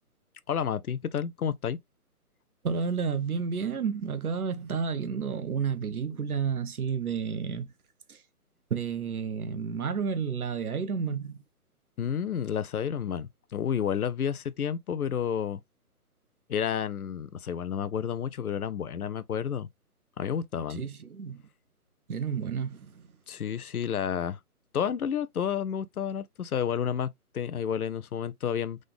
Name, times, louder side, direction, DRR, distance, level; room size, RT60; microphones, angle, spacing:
voice 1, 0.5-1.8 12.0-15.6 16.5-19.7 20.2-20.8 23.3-24.4 24.7-28.8, left 8 dB, 70° left, 0.7 m, -30 dB
voice 2, 2.6-7.7 8.1-8.2 8.7-11.4 20.7-21.4 22.1-23.1, right 6 dB, 70° right, 1.1 m, -31 dB
3.9 x 3.7 x 3.3 m
hypercardioid pair, 155°, 45 cm